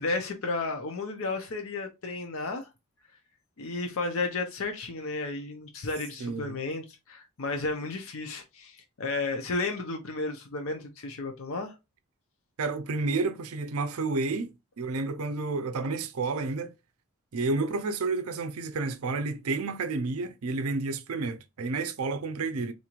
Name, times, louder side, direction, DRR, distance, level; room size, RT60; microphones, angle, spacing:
voice 1, 0.0-2.7 3.6-11.8, left 3 dB, 60° left, 0.6 m, -33 dB
voice 2, 6.2-6.5 12.6-16.7 17.3-22.7, right 3 dB, 75° right, 0.5 m, -30 dB
4.0 x 3.0 x 2.4 m
head